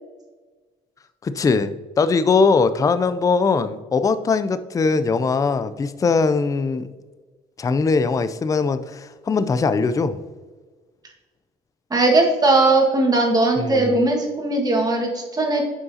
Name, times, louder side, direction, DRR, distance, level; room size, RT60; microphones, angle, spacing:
voice 1, 1.2-6.9 7.6-10.2 13.6-14.0, left 4 dB, 20° left, 12 dB, 0.4 m, -21 dB
voice 2, 11.9-15.6, right 2 dB, 25° right, -1 dB, 1.6 m, -19 dB
9.4 x 5.4 x 2.7 m, 1.3 s
cardioid pair, 105°, 17 cm